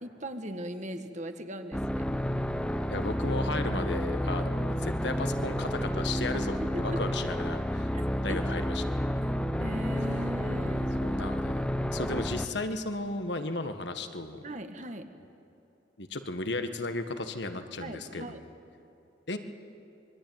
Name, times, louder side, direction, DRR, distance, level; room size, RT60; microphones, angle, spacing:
voice 1, 0.0-2.1 6.9-7.2 7.9-8.0 8.3-8.5 9.6-11.0 14.4-15.1 17.8-18.4, right 1 dB, 40° right, 7 dB, 1.6 m, -39 dB
sound 1, 1.7-12.5, equal, 5° left, 0.8 m, -30 dB
voice 2, 2.9-7.9 8.2-8.8 11.0-11.6 11.9-14.4 16.0-18.4 19.3-19.4, left 2 dB, 65° left, 8 dB, 1.6 m, -35 dB
25.0 x 23.0 x 9.4 m, 3.0 s
head